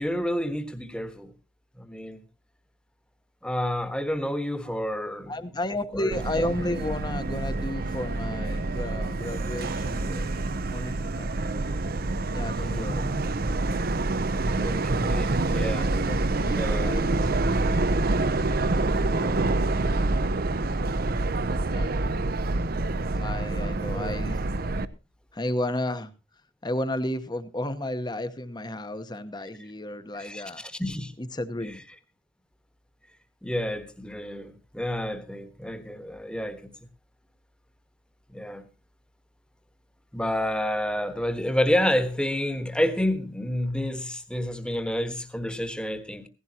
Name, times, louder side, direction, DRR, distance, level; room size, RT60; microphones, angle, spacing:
voice 1, 0.0-1.3 1.8-2.2 3.4-5.3 5.9-6.1 12.9-13.1 14.6-15.9 16.5-17.0 23.9-24.1 30.2-31.1 31.6-31.7 33.4-36.7 38.3-38.7 40.1-46.3, left 1 dB, 5° left, 1.3 m, -29 dB
voice 2, 5.3-10.3 10.7-11.3 12.3-13.1 15.7-18.0 18.8-20.2 21.7-22.1 23.1-24.4 25.3-26.1 26.6-30.6 31.2-31.8, left 1 dB, 25° left, 1.1 m, -33 dB
Subway metro underground, 6.1-24.8, right 2 dB, 50° right, 0.7 m, -27 dB
17.0 x 15.5 x 2.9 m
head